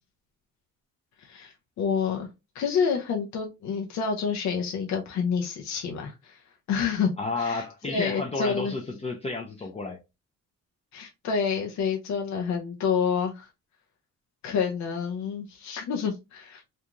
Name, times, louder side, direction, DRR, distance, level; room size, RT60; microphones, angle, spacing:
voice 1, 1.2-2.3 2.5-6.4 6.7-7.1 7.4-8.7 10.9-13.5 14.4-16.6, left 6 dB, 70° left, 0.6 m, -28 dB
voice 2, 7.2-10.0, left 3 dB, 20° left, 0.4 m, -31 dB
2.5 x 2.3 x 2.8 m
cardioid pair, 90°, 30 cm